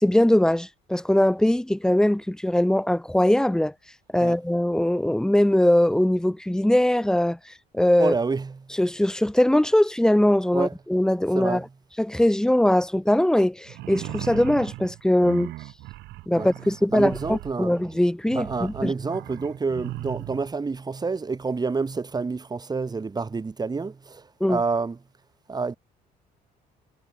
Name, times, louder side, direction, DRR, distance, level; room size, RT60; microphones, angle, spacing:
voice 1, 0.0-3.7 4.1-7.4 7.7-8.1 8.8-11.6 12.0-15.5 16.3-18.9 24.4-24.6, left 1 dB, 5° left, 1.6 m, -21 dB
voice 2, 8.0-8.7 10.5-10.7 11.3-11.7 16.3-16.5 16.9-17.8 18.3-25.0 25.5-25.7, right 4 dB, 25° right, 3.4 m, -28 dB
sound 1, 13.7-20.5, right 19 dB, 85° right, 6.6 m, -38 dB
cardioid pair, 110°, 17 cm